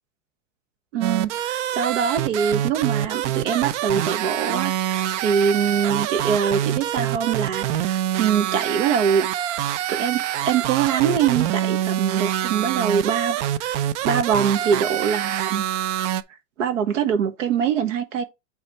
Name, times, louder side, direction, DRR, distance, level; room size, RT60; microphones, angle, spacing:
voice 1, 0.9-9.3 9.9-15.6 16.6-18.2, right 7 dB, 90° right, 1.5 m, -23 dB
sound 1, 1.0-16.2, right 11 dB, 70° right, 0.8 m, -25 dB
8.2 x 3.5 x 4.5 m
supercardioid pair, 140°, 37 cm